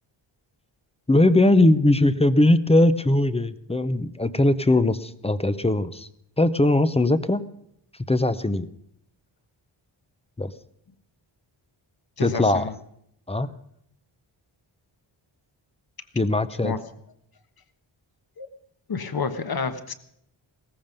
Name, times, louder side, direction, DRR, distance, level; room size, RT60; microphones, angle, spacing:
voice 1, 1.1-6.1 6.4-7.4 8.1-8.7 10.4-10.5 12.2-12.7 13.3-13.5 16.1-16.7, left 2 dB, 15° left, 14 dB, 0.6 m, -20 dB
voice 2, 12.2-12.7 16.6-16.9 18.4-18.5 18.9-19.9, left 5 dB, 50° left, 10 dB, 1.3 m, -29 dB
17.5 x 14.5 x 5.3 m, 0.73 s
wide cardioid pair, 150°, 48 cm